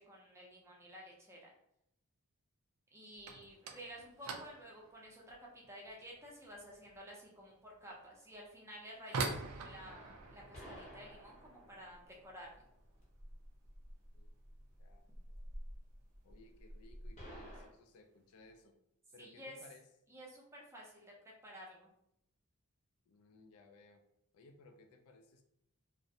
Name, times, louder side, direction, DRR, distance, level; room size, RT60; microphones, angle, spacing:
voice 1, 0.0-1.5 2.9-12.6 19.2-19.6 20.1-21.1 21.4-21.9, equal, 10° right, -3 dB, 0.5 m, -52 dB
sound 1, 3.1-13.9 14.2-14.8 15.0-15.4 15.7-15.8 16.5-16.6 17.5-17.7 18.0-18.5, right 3 dB, 80° right, 0.4 m, -46 dB
voice 2, 3.3-3.6 14.1-14.3 14.8-15.1 16.2-18.7 19.1-19.8 23.1-24.0 24.3-25.4, left 2 dB, 70° left, 5 dB, 0.3 m, -61 dB
sound 2, 9.8-17.7, equal, 30° left, 0.7 m, -52 dB
2.4 x 2.0 x 2.6 m, 0.77 s
head